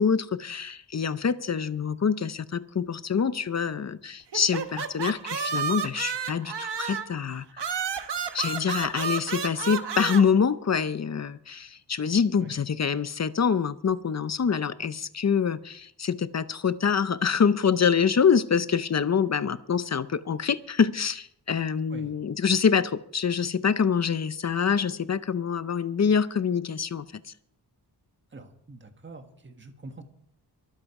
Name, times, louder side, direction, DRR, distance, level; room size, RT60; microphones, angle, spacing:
voice 1, 0.0-7.7 8.3-27.1, left 6 dB, 40° left, 0.6 m, -25 dB
sound 1, 4.3-7.2 7.6-10.2, right 6 dB, 85° right, 1.2 m, -31 dB
voice 2, 28.3-30.0, right 3 dB, 30° right, 1.5 m, -45 dB
23.5 x 8.4 x 4.8 m
wide cardioid pair, 165°, 40 cm